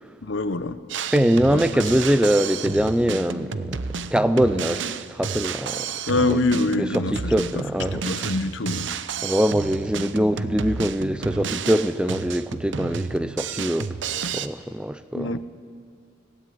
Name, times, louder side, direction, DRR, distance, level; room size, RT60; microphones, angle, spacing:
voice 1, 0.2-0.8 1.5-1.8 6.1-7.6 7.9-8.9 15.1-15.5, left 2 dB, 75° left, 0.8 m, -25 dB
Drum kit, 0.9-14.5, right 5 dB, 70° right, 0.7 m, -31 dB
voice 2, 1.1-3.8 4.1-5.9 6.3-6.4 7.1-8.0 9.2-14.0 14.3-15.4, equal, 5° right, 0.4 m, -23 dB
17.0 x 16.5 x 9.3 m
head